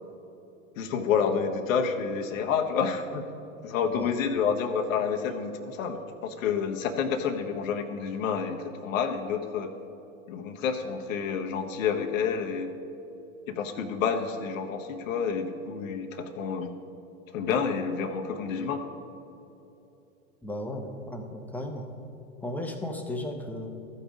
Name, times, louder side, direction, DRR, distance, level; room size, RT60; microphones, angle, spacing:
voice 1, 0.8-3.2 3.6-9.7 10.3-12.7 13.5-16.7 17.3-18.9, left 6 dB, 65° left, 5 dB, 1.0 m, -29 dB
voice 2, 20.4-21.9 22.4-23.7, left 1 dB, 5° left, 3 dB, 0.8 m, -35 dB
13.5 x 5.6 x 5.0 m, 2.9 s
hypercardioid pair, 105°, 44 cm